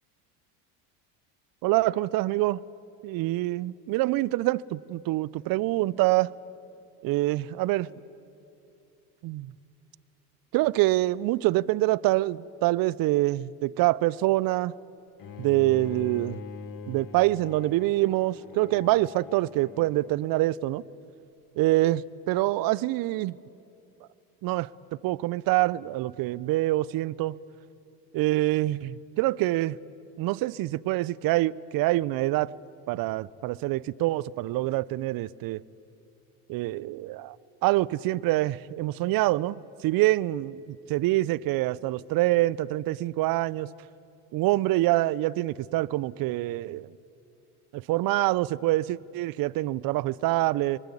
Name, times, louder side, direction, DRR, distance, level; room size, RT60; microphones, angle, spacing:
voice 1, 1.6-2.6 3.0-6.3 7.0-7.9 9.2-9.5 10.5-14.7 15.4-16.4 16.9-20.8 21.6-23.4 24.4-24.7 25.0-27.4 28.1-29.8 30.2-32.5 32.9-35.6 36.5-37.4 37.6-39.6 39.8-43.7 44.3-46.9 47.7-50.8, right 17 dB, 50° right, 0.6 m, -25 dB
Bowed string instrument, 15.2-20.2, left 5 dB, 45° left, 1.7 m, -43 dB
24.5 x 20.0 x 8.5 m
hypercardioid pair, 80°, 46 cm